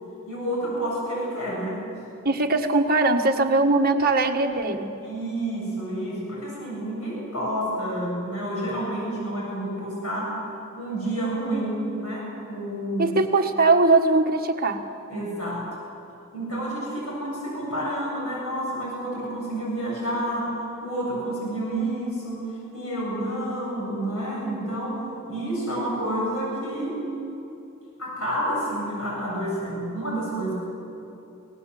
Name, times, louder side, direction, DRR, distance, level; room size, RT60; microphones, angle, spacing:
voice 1, 0.3-1.8 5.0-10.3 10.8-13.2 15.1-15.6 16.3-20.5 20.8-27.0 28.0-30.5, right 1 dB, 90° left, -4 dB, 7.9 m, -29 dB
voice 2, 2.2-4.9 13.0-14.8, right 3 dB, 45° right, 4 dB, 1.6 m, -20 dB
24.0 x 19.0 x 7.8 m, 2.8 s
head